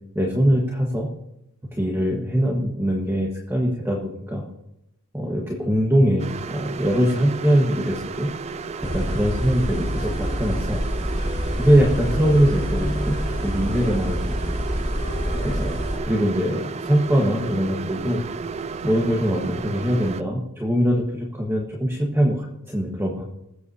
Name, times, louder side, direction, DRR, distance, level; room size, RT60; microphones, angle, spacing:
voice 1, 0.1-1.1 1.7-4.4 5.1-8.3 8.8-10.8 11.6-14.2 15.4-18.2 18.8-23.2, equal, 10° right, -2 dB, 1.4 m, -22 dB
sound 1, 6.2-20.2, right 5 dB, 30° right, 0.3 m, -33 dB
sound 2, 8.8-16.0, equal, 20° left, 2.4 m, -27 dB
20.5 x 8.2 x 2.8 m, 0.82 s
head